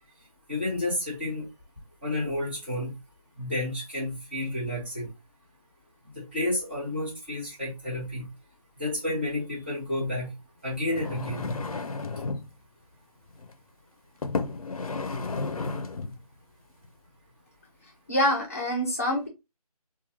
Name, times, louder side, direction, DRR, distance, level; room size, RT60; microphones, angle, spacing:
voice 1, 0.5-1.5 2.0-2.9 3.4-5.1 6.1-8.3 8.8-10.3 10.6-11.5, left 1 dB, 15° right, 1.0 m, -31 dB
sound 1, 10.8-12.5 13.3-13.5 14.2-16.2 16.8-16.9, left 3 dB, 65° left, 0.6 m, -32 dB
voice 2, 18.1-19.3, equal, 25° left, 0.7 m, -25 dB
3.1 x 2.3 x 2.8 m
figure-of-eight pair, 170°, 20 cm